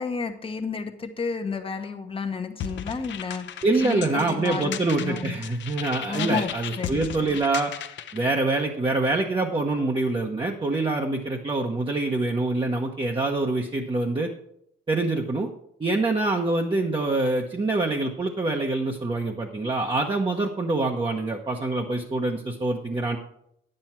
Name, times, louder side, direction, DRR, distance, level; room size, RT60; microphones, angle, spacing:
voice 1, 0.0-5.3 6.1-6.5 6.8-7.4, left 4 dB, 25° left, 5 dB, 1.0 m, -31 dB
sound 1, 2.6-8.2, left 9 dB, 65° left, 0.7 m, -36 dB
voice 2, 3.6-7.7 8.1-14.3 14.9-15.5 15.8-23.2, right 2 dB, 25° right, 0 dB, 1.0 m, -25 dB
9.6 x 7.7 x 4.5 m, 0.73 s
cardioid pair, 90°, 20 cm